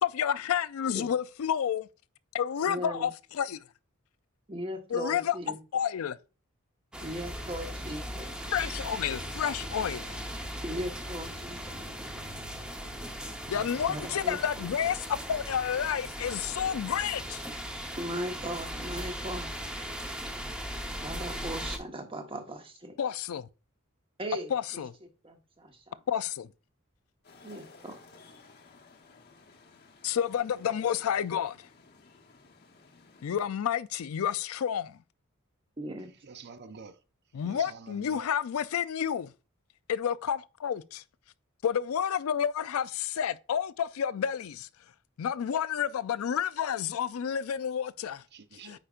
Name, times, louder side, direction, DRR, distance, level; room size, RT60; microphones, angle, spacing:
voice 1, 0.0-1.9 2.3-3.6 4.9-6.2 8.5-10.2 13.5-17.4 23.0-23.5 24.5-25.0 26.1-26.5 30.0-31.7 33.2-35.0 37.3-39.3 39.9-41.0 41.6-44.7 45.2-48.2 48.6-48.8, left 8 dB, 80° left, 0.4 m, -30 dB
voice 2, 2.6-3.1 4.5-5.6 7.0-8.3 10.6-11.9 13.9-14.7 18.0-19.5 21.0-23.0 24.2-24.8 25.2-26.0 27.4-27.9 35.8-36.1, right 1 dB, 25° right, 1.1 m, -38 dB
sound 1, 6.9-21.8, equal, 5° right, 0.8 m, -38 dB
sound 2, 27.2-33.5, left 4 dB, 50° left, 1.0 m, -56 dB
voice 3, 36.2-37.0 37.4-38.3 48.3-48.8, right 5 dB, 55° right, 0.6 m, -47 dB
8.8 x 5.0 x 2.4 m
head